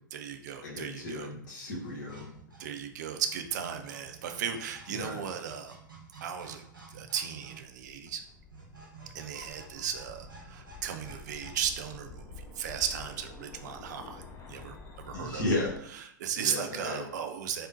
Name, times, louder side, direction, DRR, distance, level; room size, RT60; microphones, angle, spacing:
voice 1, 0.1-1.3 2.6-5.8 6.2-6.6 6.9-8.2 9.1-14.2 14.5-14.8 15.1-15.5 16.2-17.7, right 8 dB, 60° right, 6 dB, 0.4 m, -36 dB
voice 2, 0.6-2.3 4.9-5.2 15.1-15.8 16.4-17.0, left 2 dB, 65° left, -3 dB, 1.0 m, -34 dB
sound 1, 1.7-11.7, right 3 dB, 90° right, 0.8 m, -52 dB
sound 2, 7.5-15.7, left 4 dB, 25° left, 0.5 m, -49 dB
3.6 x 2.0 x 2.5 m, 0.69 s
figure-of-eight pair, 100°, 11 cm